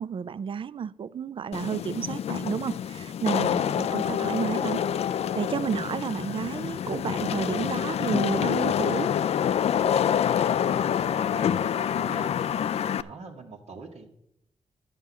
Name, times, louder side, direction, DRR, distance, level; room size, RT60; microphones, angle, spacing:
voice 1, 0.0-4.8 5.3-9.1, right 7 dB, 50° right, 0.4 m, -31 dB
Wind / Rain, 1.5-13.0, left 9 dB, 70° left, 0.4 m, -27 dB
voice 2, 10.8-12.4 12.7-14.1, right 4 dB, 80° right, 1.5 m, -44 dB
10.5 x 5.5 x 7.4 m
cardioid pair, 80°, 11 cm